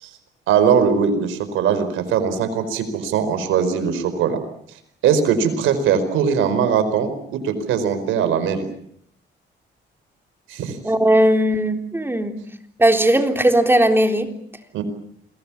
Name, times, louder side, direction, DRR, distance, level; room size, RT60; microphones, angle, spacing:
voice 1, 0.5-4.4 5.0-8.7 10.5-10.8 14.7-14.8, right 7 dB, 90° right, 11 dB, 4.9 m, -20 dB
voice 2, 10.8-12.4 12.8-14.3, right 1 dB, 10° right, 4 dB, 3.8 m, -17 dB
28.0 x 22.5 x 7.3 m, 0.67 s
cardioid pair, 90°, 20 cm